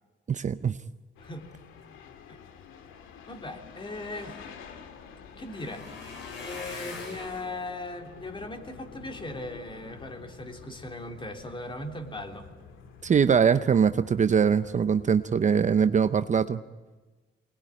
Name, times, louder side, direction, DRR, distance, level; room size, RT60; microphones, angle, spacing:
voice 1, 0.3-0.8 13.0-16.6, right 7 dB, 40° right, 11 dB, 0.7 m, -22 dB
sound 1, 1.2-16.5, left 6 dB, 90° left, 2.0 m, -49 dB
voice 2, 3.3-4.4 5.4-5.9 6.4-12.5, left 2 dB, 25° left, 3 dB, 3.4 m, -38 dB
sound 2, 3.6-9.8 10.4-10.8 11.2-11.4 11.7-11.8, left 4 dB, 70° left, 6.3 m, -46 dB
24.0 x 20.0 x 10.0 m, 1.3 s
cardioid pair, 90°, 20 cm